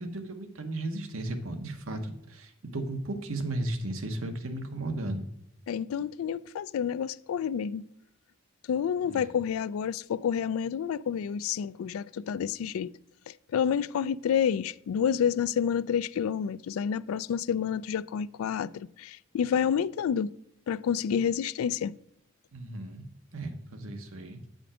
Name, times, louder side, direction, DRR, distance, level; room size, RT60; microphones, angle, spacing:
voice 1, 0.0-5.3 9.0-9.3 22.5-23.0 23.3-24.4, right 1 dB, 80° right, 1.1 m, -35 dB
voice 2, 5.7-7.8 8.7-12.9 13.3-20.3 20.7-21.9, left 8 dB, 90° left, 0.3 m, -29 dB
8.6 x 5.1 x 4.9 m
head